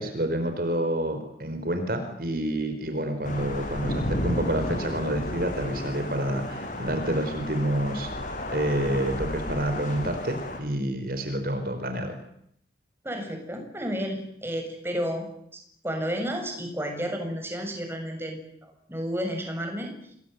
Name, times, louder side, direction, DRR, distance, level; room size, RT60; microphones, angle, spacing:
voice 1, 0.0-8.1 8.5-12.1, right 1 dB, 55° right, 7 dB, 4.6 m, -28 dB
Thunder / Rain, 3.2-10.6, left 1 dB, 45° left, 5.5 m, -33 dB
voice 2, 13.0-15.3 15.8-20.2, equal, 15° right, 4 dB, 7.1 m, -32 dB
28.0 x 22.5 x 9.5 m, 0.71 s
head